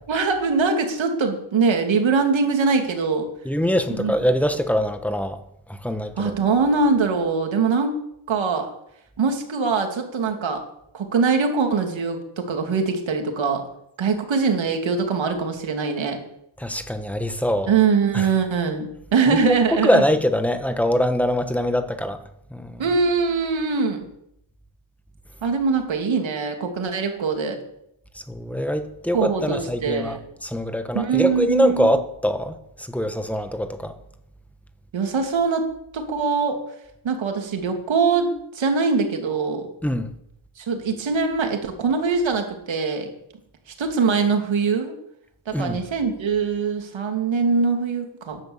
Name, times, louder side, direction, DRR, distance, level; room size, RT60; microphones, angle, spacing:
voice 1, 0.1-3.3 3.9-4.1 6.2-8.0 8.3-8.7 9.2-10.6 10.9-13.6 14.0-16.2 17.7-20.0 22.8-24.0 25.4-27.6 29.1-30.2 30.9-32.0 34.9-35.7 35.9-36.6 37.0-39.7 40.6-43.1 43.8-44.9 45.5-48.4, right 5 dB, 65° right, 2.9 m, -22 dB
voice 2, 3.4-5.4 5.7-6.3 16.6-17.7 18.1-18.3 19.3-22.2 22.5-22.8 28.3-33.9 39.8-40.1 45.5-45.8, equal, 5° left, 1.2 m, -23 dB
13.0 x 11.0 x 7.4 m
wide cardioid pair, 130°, 49 cm